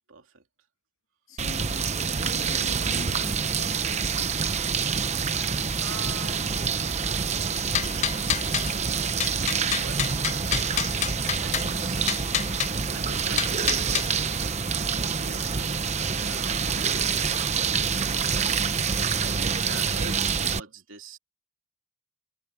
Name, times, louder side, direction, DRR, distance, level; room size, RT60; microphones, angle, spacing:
voice 1, 0.1-0.4 5.8-10.0 10.5-12.6 12.9-15.8 16.1-18.8 19.2-21.2, right 3 dB, 75° right, 2.8 m, -44 dB
voice 2, 1.3-4.1, left 1 dB, 80° left, 2.6 m, -42 dB
sound 1, 1.4-20.6, right 6 dB, 35° right, 0.9 m, -27 dB
sound 2, 7.5-8.7 9.2-11.7 12.1-12.7 13.4-14.1, left 10 dB, 35° left, 0.4 m, -28 dB
sound 3, 10.0-19.8, left 1 dB, 10° left, 1.6 m, -47 dB
head